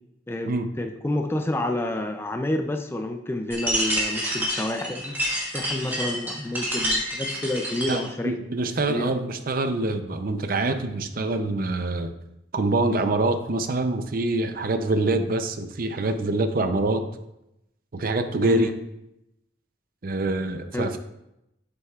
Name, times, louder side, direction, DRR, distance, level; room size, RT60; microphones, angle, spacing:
voice 1, 0.3-5.2 5.5-8.4 8.9-9.1 18.4-18.7 20.7-21.0, left 1 dB, 10° left, 5 dB, 0.4 m, -29 dB
sound 1, 3.5-8.1, equal, 10° right, 1.4 m, -28 dB
voice 2, 7.9-12.1 12.5-17.0 17.9-18.7 20.0-21.0, right 2 dB, 45° right, 8 dB, 0.5 m, -25 dB
8.5 x 7.7 x 2.4 m, 0.86 s
head